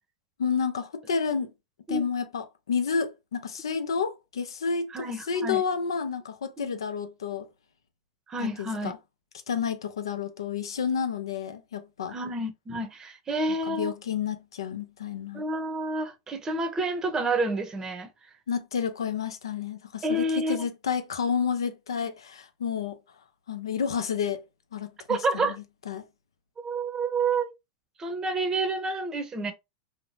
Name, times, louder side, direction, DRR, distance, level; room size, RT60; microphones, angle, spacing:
voice 1, 0.4-1.5 1.9-7.5 8.4-9.0 9.5-12.2 13.7-15.4 18.5-23.0 23.5-24.4 24.7-25.5 25.9-26.0, left 6 dB, 90° left, 0.5 m, -30 dB
voice 2, 4.9-5.6 6.6-6.7 8.3-8.9 12.1-13.9 15.3-18.1 20.0-20.6 25.1-25.6 26.6-27.5 28.0-29.5, right 2 dB, 25° right, 0.7 m, -29 dB
2.7 x 2.1 x 3.1 m
hypercardioid pair, 105°, 2 cm